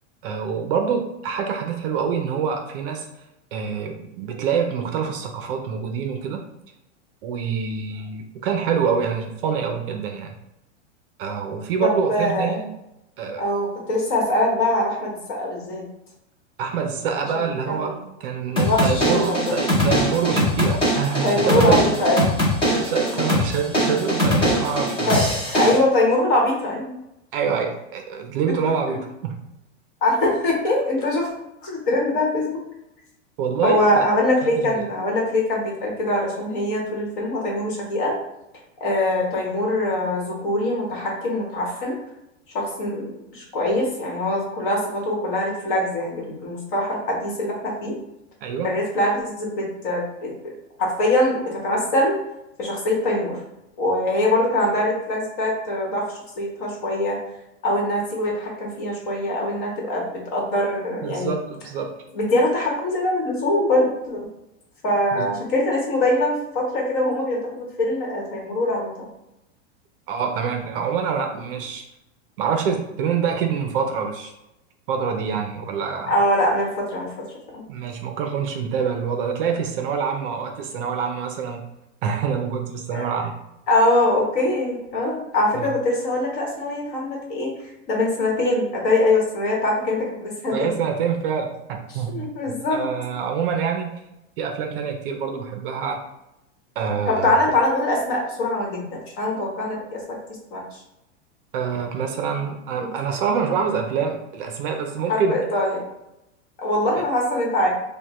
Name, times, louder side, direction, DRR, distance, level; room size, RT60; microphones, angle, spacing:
voice 1, 0.2-3.1 3.5-6.4 7.2-10.4 11.2-12.7 13.2-13.4 16.6-22.0 22.7-25.2 25.6-25.8 27.3-29.4 33.4-34.1 34.4-34.9 48.4-48.7 61.0-62.0 65.1-65.3 70.1-71.8 72.4-74.3 74.9-76.1 77.7-81.6 82.0-83.4 85.5-85.7 90.5-93.9 94.4-96.0 96.8-97.4 101.5-105.3, right 6 dB, 50° right, 4 dB, 0.5 m, -26 dB
voice 2, 11.8-12.6 13.4-15.9 17.3-17.9 18.6-19.4 21.2-22.3 23.0-23.2 25.1-26.9 30.0-31.3 31.6-32.6 33.6-38.1 38.8-41.9 42.5-47.9 48.6-50.5 50.8-52.1 52.6-53.3 53.8-57.2 57.6-60.0 60.3-61.3 62.1-64.3 64.8-68.9 76.1-77.1 77.5-77.6 82.9-83.1 83.7-87.5 87.9-90.7 92.1-92.9 97.1-100.0 100.5-100.6 102.8-102.9 105.1-105.8 106.6-107.7, left 1 dB, 45° left, -2 dB, 1.2 m, -23 dB
sound 1, 18.6-25.8, equal, 15° left, 0.6 m, -21 dB
5.0 x 2.2 x 2.9 m, 0.89 s
supercardioid pair, 165°, 37 cm